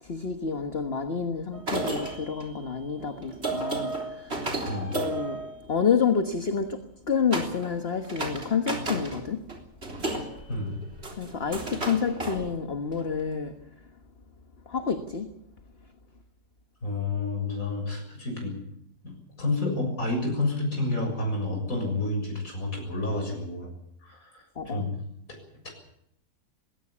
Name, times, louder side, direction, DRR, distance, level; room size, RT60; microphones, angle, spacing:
voice 1, 0.0-4.5 4.9-5.4 5.7-9.4 11.2-13.5 14.7-15.3 24.5-24.8, left 6 dB, 40° left, 6 dB, 1.6 m, -29 dB
sound 1, 1.5-6.2 7.3-7.8 8.0-9.2 9.5-13.1, right 2 dB, 40° right, 3.9 m, -33 dB
voice 2, 4.7-5.0 10.5-10.8 16.8-18.6 19.0-23.7 24.0-24.9 25.6-25.7, left 2 dB, 60° left, 2 dB, 7.5 m, -30 dB
21.0 x 17.5 x 8.6 m, 0.76 s
omnidirectional pair, 1.6 m